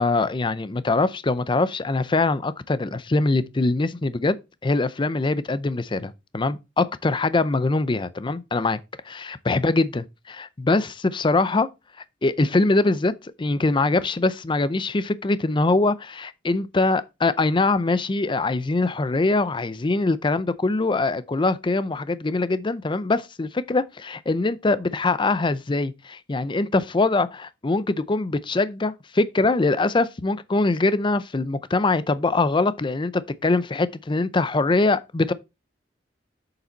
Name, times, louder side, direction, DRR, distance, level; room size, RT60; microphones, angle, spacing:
voice 1, 0.0-4.4 4.6-8.8 9.1-10.0 10.3-11.7 12.2-13.1 13.4-35.3, left 3 dB, 25° left, 0.5 m, -23 dB
7.1 x 6.8 x 3.9 m
head